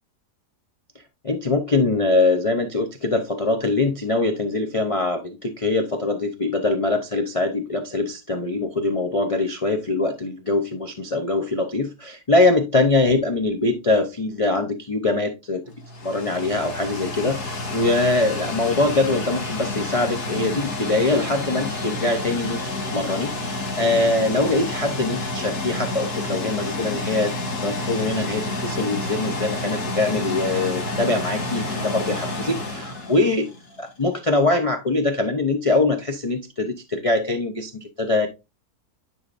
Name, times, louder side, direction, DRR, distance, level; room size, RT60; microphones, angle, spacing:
voice 1, 1.2-15.6 16.0-22.6 22.9-27.3 27.6-33.5 33.8-38.3, left 2 dB, 45° left, 6 dB, 0.4 m, -23 dB
sound 1, 15.7-33.8, left 2 dB, 75° left, 2.1 m, -29 dB
10.0 x 4.7 x 2.5 m, 0.25 s
omnidirectional pair, 1.7 m